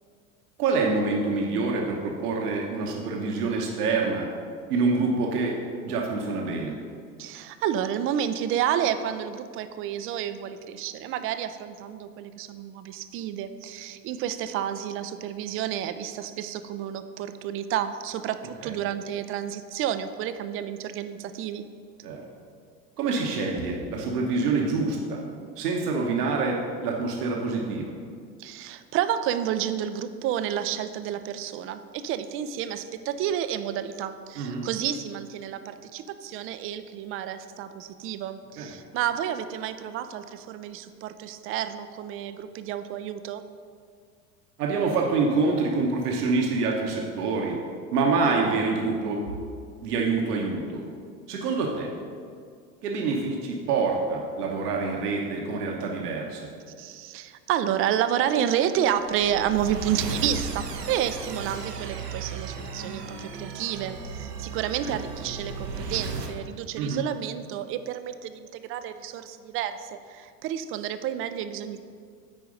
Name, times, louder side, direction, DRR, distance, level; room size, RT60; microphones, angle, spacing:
voice 1, 0.6-4.3 4.7-5.6 5.8-6.8 18.6-18.7 22.0-22.2 23.0-25.2 25.6-27.9 34.4-34.6 38.6-38.7 44.6-47.6 47.9-49.2 49.8-50.8 51.3-51.9 52.8-56.5 64.8-65.0 66.8-67.0, right 4 dB, 75° right, 0 dB, 1.2 m, -26 dB
voice 2, 7.2-21.6 28.4-43.4 56.8-71.8, right 10 dB, 30° right, 11 dB, 0.4 m, -30 dB
sound 1, 58.9-66.4, right 4 dB, 90° right, 0.9 m, -35 dB
9.1 x 4.6 x 5.2 m, 2.1 s
hypercardioid pair, 85°, 47 cm